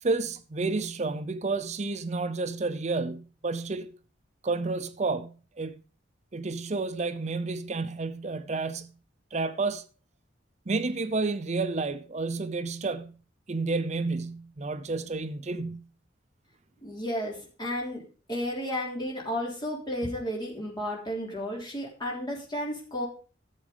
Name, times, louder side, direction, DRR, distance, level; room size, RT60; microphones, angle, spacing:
voice 1, 0.0-3.9 4.4-5.8 6.3-8.9 9.3-9.9 10.7-13.2 13.5-15.8, right 3 dB, 35° right, 0.6 m, -30 dB
voice 2, 16.8-18.0 18.3-23.1, equal, 25° left, 3.4 m, -33 dB
12.0 x 7.2 x 5.1 m
head